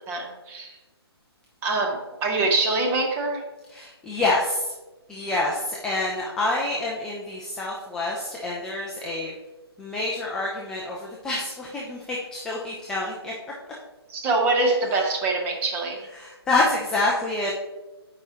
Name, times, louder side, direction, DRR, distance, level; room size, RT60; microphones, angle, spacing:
voice 1, 0.1-0.8 1.6-3.4 14.1-16.1, right 3 dB, 15° right, 1 dB, 0.8 m, -24 dB
voice 2, 3.7-4.7 5.1-9.3 9.8-13.3 16.2-17.5, left 2 dB, 5° left, -3 dB, 0.3 m, -27 dB
8.9 x 5.0 x 2.9 m, 1.1 s
figure-of-eight pair, 145°, 14 cm